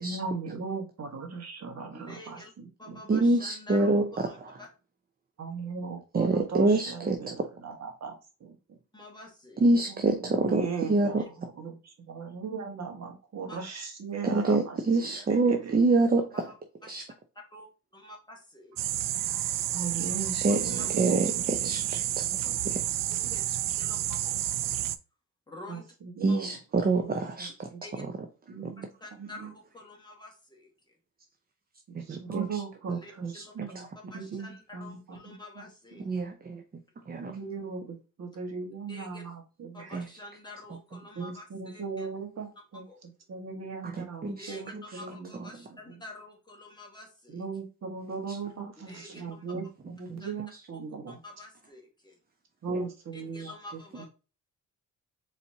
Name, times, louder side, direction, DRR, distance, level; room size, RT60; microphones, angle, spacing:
voice 1, 0.0-3.0 5.4-8.5 10.2-11.2 11.6-11.8 12.1-15.8 19.7-21.2 21.9-22.0 22.4-22.5 23.2-23.3 25.7-25.8 26.2-26.5 26.8-27.1 27.4-27.8 28.5-28.9 29.2-29.5 32.1-33.2 33.5-33.9 34.1-35.0 35.2-35.6 37.2-39.9 41.1-42.8 43.3-45.3 45.9-46.0 47.3-49.6 50.0-51.2 52.6-53.5, right 4 dB, 50° right, 3 dB, 1.5 m, -38 dB
voice 2, 1.9-2.5 2.8-4.7 8.9-9.6 11.2-11.3 13.5-13.6 16.5-16.6 16.8-17.0 17.5-17.7 17.9-19.0 20.5-20.9 23.1-23.4 23.8-24.8 25.5-25.8 26.3-26.4 27.8-28.0 28.8-30.7 32.9-33.6 34.1-36.1 38.9-39.2 39.7-42.1 42.7-43.0 44.3-47.4 48.9-49.4 50.2-50.3 51.1-52.1 53.1-54.1, left 2 dB, 15° left, -1 dB, 1.7 m, -48 dB
voice 3, 3.1-4.6 6.1-7.5 9.6-11.3 14.2-16.5 16.9-17.0 20.4-20.7 20.9-22.3 22.6-22.8 26.2-27.7 28.0-28.1 28.6-28.7 31.9-32.6 32.9-33.9 36.0-36.6 37.1-37.4 39.9-40.1 41.2-41.3 43.8-45.0 48.3-48.7 49.0-49.1 49.5-50.2 50.5-50.6 52.7-52.9 53.4-53.5, right 3 dB, 30° right, 6 dB, 0.6 m, -27 dB
sound 1, 18.8-25.0, right 13 dB, 75° right, 0.5 m, -30 dB
4.3 x 4.1 x 2.8 m, 0.32 s
cardioid pair, 110°, 33 cm